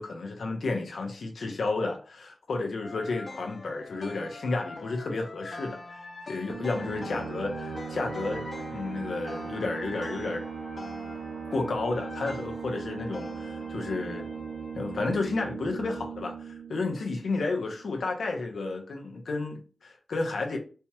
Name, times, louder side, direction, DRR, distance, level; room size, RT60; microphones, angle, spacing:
voice 1, 0.0-6.0 6.3-10.4 11.5-14.3 14.7-20.6, left 3 dB, 90° left, 0.8 m, -32 dB
sound 1, 2.8-15.2, left 3 dB, 45° left, 0.5 m, -44 dB
sound 2, 6.5-17.8, right 6 dB, 90° right, 0.5 m, -39 dB
4.4 x 2.9 x 2.3 m
wide cardioid pair, 115°, 0 cm